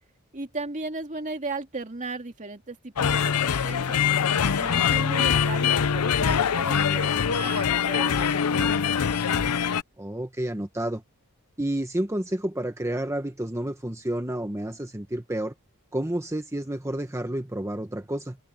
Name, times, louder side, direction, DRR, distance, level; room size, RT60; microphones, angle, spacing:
voice 1, 0.3-8.8, right 3 dB, 35° right, 2.5 m, -36 dB
sound 1, 3.0-9.8, left 7 dB, 85° left, 0.6 m, -23 dB
voice 2, 10.0-11.0 11.6-15.5 15.9-18.4, right 1 dB, 15° right, 1.1 m, -30 dB
head